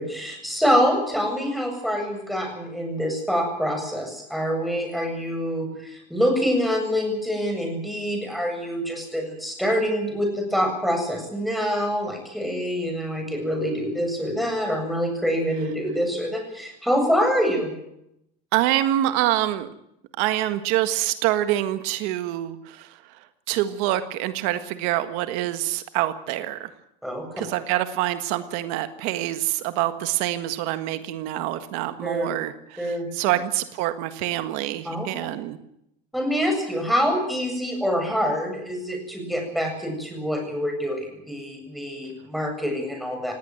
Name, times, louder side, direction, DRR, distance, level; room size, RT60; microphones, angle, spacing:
voice 1, 0.0-17.7 27.0-27.4 32.0-32.3 32.8-33.1 34.8-35.1 36.1-43.3, equal, ahead, 3 dB, 7.6 m, -25 dB
voice 2, 18.5-19.7 20.2-23.0 23.5-26.7 27.4-35.6, right 14 dB, 80° right, 10 dB, 1.7 m, -26 dB
19.0 x 17.5 x 9.3 m, 0.80 s
cardioid pair, 135°, 21 cm